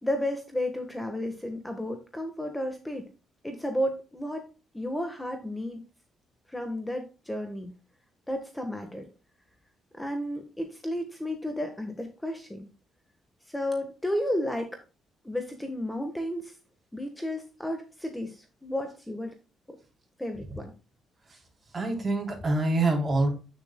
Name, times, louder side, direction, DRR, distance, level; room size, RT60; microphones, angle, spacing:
voice 1, 0.0-3.1 3.4-4.4 4.7-5.8 6.5-7.7 8.3-9.0 10.0-12.7 13.5-14.7 15.2-16.6 16.9-19.3 20.2-20.7, left 1 dB, 10° left, 5 dB, 1.4 m, -32 dB
voice 2, 21.7-23.3, right 2 dB, 30° right, 2 dB, 3.6 m, -26 dB
8.9 x 7.3 x 2.3 m, 0.32 s
cardioid pair, 90°, 0 cm